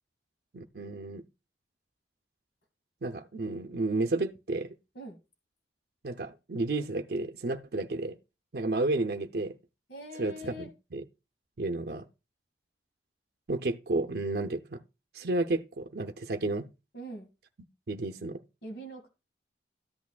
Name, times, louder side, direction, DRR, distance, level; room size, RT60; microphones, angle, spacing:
voice 1, 0.5-1.2 3.0-4.8 6.0-8.2 8.5-9.6 10.2-11.0 11.6-12.1 13.5-14.8 15.1-16.7 17.9-18.4, right 2 dB, 60° right, 0.6 m, -32 dB
voice 2, 9.9-10.7 16.9-17.3 18.6-19.1, right 1 dB, 75° left, 2.1 m, -42 dB
13.0 x 8.4 x 2.3 m
head